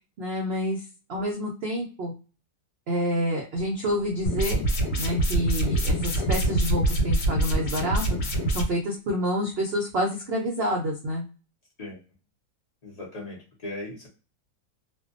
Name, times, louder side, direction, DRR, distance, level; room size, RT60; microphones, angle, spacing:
voice 1, 0.2-0.8 1.1-2.1 2.9-4.6 5.0-8.0 8.5-11.2, equal, 65° right, 0 dB, 0.6 m, -28 dB
sound 1, 4.3-8.6, right 1 dB, 80° left, 1.3 m, -25 dB
voice 2, 12.8-14.1, left 2 dB, 35° left, -3 dB, 0.7 m, -38 dB
2.6 x 2.1 x 2.5 m, 0.34 s
omnidirectional pair, 1.7 m